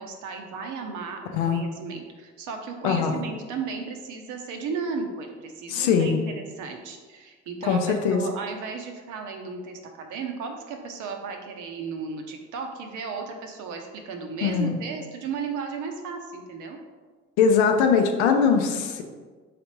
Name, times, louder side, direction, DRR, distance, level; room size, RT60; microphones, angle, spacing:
voice 1, 0.0-16.8, right 5 dB, 60° right, 4 dB, 0.7 m, -35 dB
voice 2, 1.3-1.6 2.8-3.1 5.7-6.2 7.6-8.2 14.4-14.8 17.4-19.0, left 6 dB, 80° left, 5 dB, 0.5 m, -21 dB
3.9 x 3.3 x 2.9 m, 1.4 s
hypercardioid pair, 50°, 33 cm